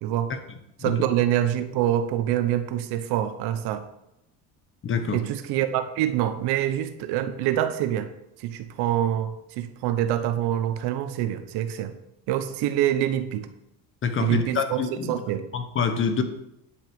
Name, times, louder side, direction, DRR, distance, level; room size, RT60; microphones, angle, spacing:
voice 1, 0.0-0.3 0.8-3.8 5.1-8.1 8.4-11.9 12.3-13.5 14.2-14.8 15.1-15.5, right 11 dB, 75° right, 10 dB, 1.0 m, -25 dB
voice 2, 4.8-5.2 14.0-15.2 15.5-16.2, left 6 dB, 30° left, 8 dB, 1.1 m, -26 dB
10.0 x 6.1 x 5.2 m, 0.84 s
cardioid pair, 140°, 40 cm